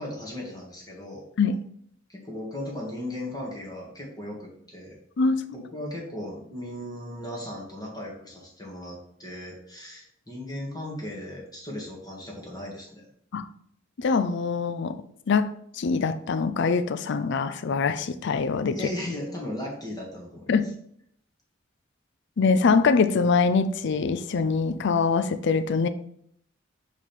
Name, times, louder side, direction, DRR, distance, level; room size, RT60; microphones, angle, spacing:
voice 1, 0.0-1.3 2.1-5.0 5.5-13.1 18.7-20.6, left 1 dB, 20° left, 1.8 m, -37 dB
voice 2, 14.0-15.0 15.3-18.8 20.5-20.7 22.4-25.9, left 4 dB, 65° left, 0.5 m, -23 dB
7.3 x 3.5 x 4.5 m
head